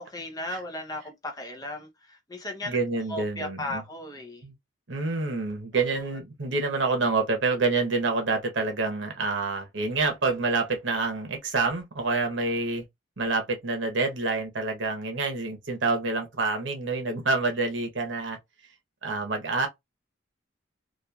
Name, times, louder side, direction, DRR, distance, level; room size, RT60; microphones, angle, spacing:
voice 1, 0.0-4.4 5.7-5.8, left 1 dB, 20° left, 0.6 m, -36 dB
voice 2, 2.6-3.8 4.4-4.5 4.9-12.8 13.2-18.4 19.0-19.7, right 3 dB, 65° right, 0.9 m, -27 dB
3.0 x 2.4 x 2.3 m
head